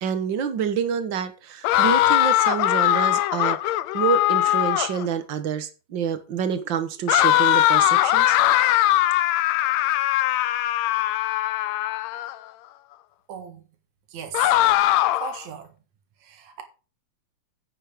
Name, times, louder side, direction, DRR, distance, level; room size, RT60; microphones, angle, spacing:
voice 1, 0.0-8.4, right 7 dB, 50° right, 1.8 m, -27 dB
sound 1, 1.6-5.0 7.1-12.4 14.3-15.4, left 14 dB, 75° left, 1.9 m, -20 dB
voice 2, 13.3-13.6 14.1-14.5 15.2-15.7 16.2-16.6, right 7 dB, 75° right, 3.1 m, -36 dB
11.0 x 8.3 x 5.2 m
omnidirectional pair, 3.3 m